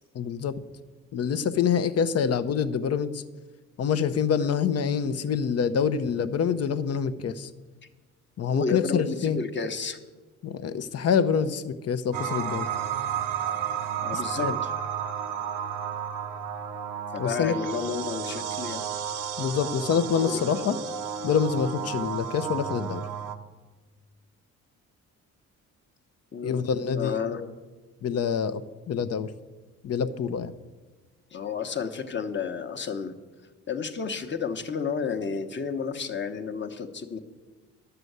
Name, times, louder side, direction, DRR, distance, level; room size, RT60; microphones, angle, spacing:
voice 1, 0.1-0.6 1.1-3.2 3.8-7.5 8.4-9.4 10.4-12.7 14.1-14.6 17.2-17.6 19.4-20.8 21.2-23.1 26.4-27.5 28.0-29.3 29.8-30.5, left 7 dB, 55° left, 13 dB, 0.8 m, -26 dB
voice 2, 8.5-10.0 14.0-14.5 17.1-18.8 20.2-20.4 26.3-26.6 26.9-27.4 31.3-33.1 33.7-37.2, left 5 dB, 40° left, 7 dB, 1.1 m, -31 dB
sound 1, 12.1-23.4, right 8 dB, 90° right, 0.8 m, -32 dB
11.0 x 6.9 x 8.0 m, 1.3 s
cardioid pair, 90°, 30 cm